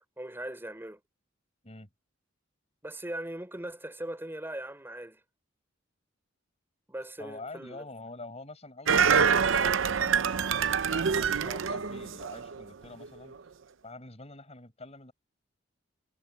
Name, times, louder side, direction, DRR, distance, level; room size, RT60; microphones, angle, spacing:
voice 1, 0.2-1.0 2.8-5.2 6.9-7.8, right 1 dB, 10° right, 5.0 m, -39 dB
voice 2, 7.2-13.4 13.8-15.1, left 2 dB, 35° left, 5.2 m, -46 dB
sound 1, 8.9-12.6 13.0-13.1, right 6 dB, 85° right, 0.7 m, -26 dB
head